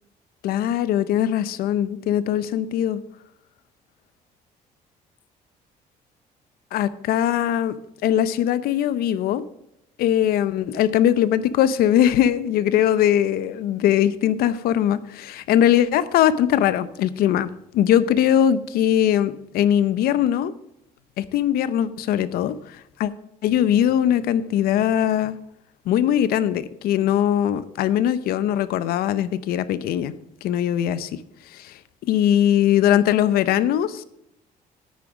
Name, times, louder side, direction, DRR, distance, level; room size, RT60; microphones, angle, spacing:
voice 1, 0.4-3.0 6.7-7.7 8.0-9.4 10.0-20.5 21.2-23.1 23.4-25.4 25.9-30.1 30.4-31.2 31.5-34.0, left 10 dB, 85° left, 16 dB, 0.8 m, -21 dB
9.7 x 9.3 x 4.9 m, 0.79 s
cardioid pair, 130°, 15 cm